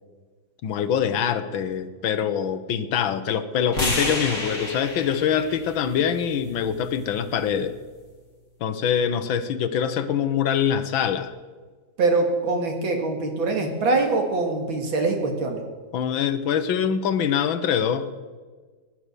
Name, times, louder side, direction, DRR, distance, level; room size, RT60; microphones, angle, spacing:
voice 1, 0.6-7.8 8.6-11.3 15.9-18.1, left 8 dB, 80° left, 11 dB, 1.7 m, -24 dB
sound 1, 3.7-7.9, left 1 dB, 40° left, 3.3 m, -32 dB
voice 2, 12.0-15.6, right 3 dB, 80° right, 3 dB, 2.9 m, -23 dB
16.0 x 11.0 x 6.8 m, 1.4 s
omnidirectional pair, 2.1 m